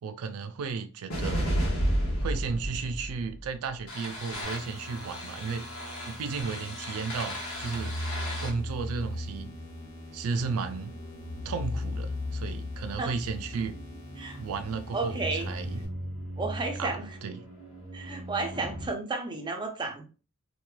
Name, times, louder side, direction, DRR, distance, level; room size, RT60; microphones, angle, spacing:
voice 1, 0.0-1.5 2.2-5.6 6.1-8.0 8.4-9.5 10.1-10.9 11.4-13.8 14.4-15.8 16.8-17.4, right 5 dB, 80° right, 0.4 m, -34 dB
sound 1, 1.1-18.9, equal, 85° left, 1.0 m, -35 dB
sound 2, 4.4-15.9, left 1 dB, 35° left, 1.2 m, -47 dB
voice 2, 14.9-15.5 16.4-17.1 17.9-20.1, right 3 dB, 20° right, 0.5 m, -32 dB
2.9 x 2.3 x 2.2 m
head